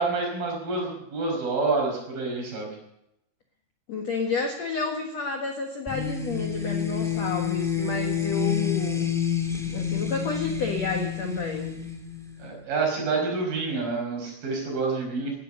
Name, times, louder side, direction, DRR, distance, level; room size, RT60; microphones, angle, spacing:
voice 1, 0.0-2.8 12.4-15.3, right 3 dB, 45° right, 0 dB, 7.0 m, -28 dB
voice 2, 3.9-9.1 9.7-11.8, left 4 dB, 70° left, 3 dB, 1.6 m, -30 dB
sound 1, 5.8-12.5, left 8 dB, 5° left, 0.3 m, -29 dB
18.0 x 12.0 x 6.8 m, 0.82 s
omnidirectional pair, 5.8 m